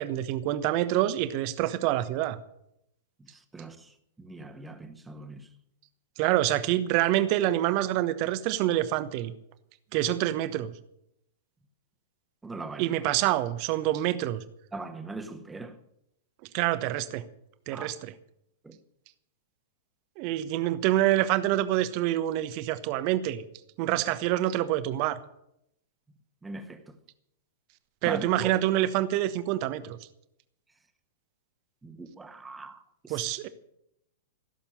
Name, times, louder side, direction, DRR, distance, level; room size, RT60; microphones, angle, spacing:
voice 1, 0.0-2.4 6.2-9.3 9.9-10.7 12.8-14.4 16.5-17.2 17.7-18.1 20.2-23.4 23.8-25.2 28.0-30.0 33.1-33.5, right 14 dB, 40° right, 1.1 m, -26 dB
voice 2, 3.2-5.5 12.4-13.1 14.7-15.8 17.7-17.9 18.6-18.8 26.4-27.0 28.0-28.5 31.8-33.3, right 2 dB, 10° right, 1.5 m, -41 dB
16.5 x 7.4 x 10.0 m
figure-of-eight pair, 100°, 0 cm